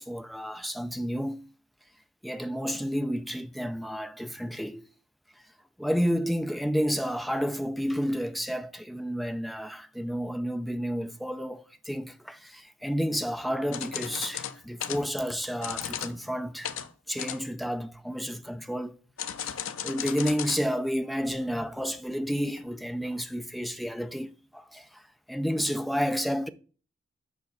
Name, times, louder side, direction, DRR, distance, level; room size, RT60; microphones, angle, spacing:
voice 1, 0.0-1.5 2.2-4.8 5.8-16.7 17.1-19.0 19.6-25.0 25.3-26.5, equal, ahead, 0.4 m, -31 dB
sound 1, 13.7-15.0 15.6-16.2 16.6-16.9 17.2-17.7 19.2-20.6 20.9-21.0 21.9-22.0 22.6-22.7, left 9 dB, 80° left, 0.6 m, -35 dB
7.4 x 5.2 x 4.0 m
head